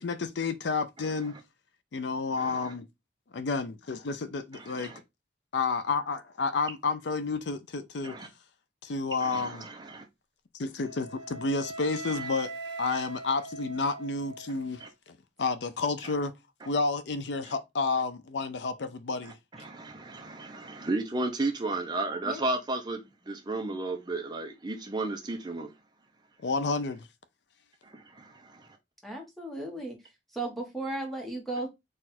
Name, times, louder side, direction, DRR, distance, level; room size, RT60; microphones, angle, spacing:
voice 1, 0.0-1.3 1.9-2.9 3.3-4.9 5.5-8.1 8.8-9.7 10.5-12.5 12.8-16.3 16.7-19.3 26.4-27.1, left 4 dB, 70° left, 0.5 m, -30 dB
voice 2, 2.4-2.7 4.5-5.0 8.0-8.3 9.2-10.0 14.8-14.9 17.4-17.5 19.2-19.3 19.6-25.7 27.8-28.7, right 2 dB, 25° right, 0.6 m, -34 dB
Wind instrument woodwind instrument, 10.8-14.8, right 2 dB, 70° right, 1.3 m, -41 dB
voice 3, 29.0-30.0 30.3-31.7, right 2 dB, ahead, 1.1 m, -35 dB
4.1 x 2.5 x 4.1 m
head